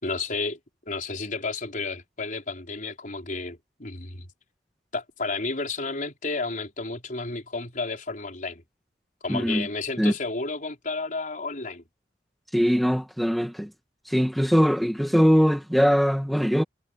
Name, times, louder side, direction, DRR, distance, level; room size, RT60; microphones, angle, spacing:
voice 1, 0.0-0.6 0.9-4.3 4.9-8.6 9.2-11.8, left 3 dB, 50° left, 4.8 m, -32 dB
voice 2, 9.3-9.7 10.0-10.1 12.5-13.7 14.1-16.6, equal, ahead, 1.8 m, -21 dB
head